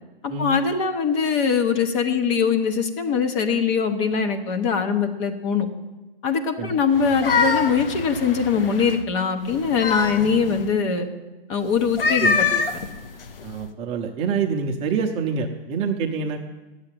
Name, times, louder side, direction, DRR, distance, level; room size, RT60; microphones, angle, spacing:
voice 1, 0.2-5.7 6.2-11.1 11.5-12.5, left 6 dB, 30° left, 6 dB, 1.0 m, -22 dB
sound 1, 6.9-9.0 9.5-10.7 11.8-13.6, left 4 dB, 70° left, 1.1 m, -25 dB
voice 2, 12.2-12.6 13.4-16.4, right 5 dB, 20° right, 3 dB, 0.8 m, -26 dB
9.7 x 7.5 x 9.0 m, 1.1 s
hypercardioid pair, 140°, 29 cm